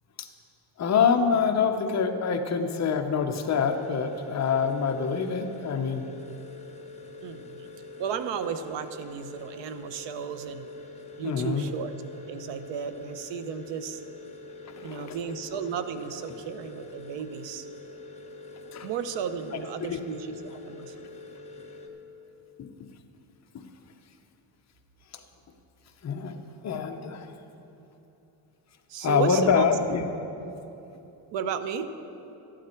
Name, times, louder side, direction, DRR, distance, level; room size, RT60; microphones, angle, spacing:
voice 1, 0.8-6.1 11.2-11.7 14.8-15.2 18.7-18.9 19.9-20.0 22.6-22.9 26.0-26.3 26.6-27.3 29.0-30.1, left 6 dB, 40° left, 5 dB, 0.8 m, -25 dB
sound 1, 3.4-21.9, left 3 dB, 15° left, 0.9 m, -45 dB
voice 2, 7.2-7.7 8.0-10.7 11.2-11.9 12.3-14.0 14.8-17.7 18.8-20.9 28.9-29.6 31.3-31.9, right 7 dB, 85° right, 10 dB, 0.8 m, -34 dB
13.0 x 11.5 x 4.4 m, 2.9 s
cardioid pair, 155°, 42 cm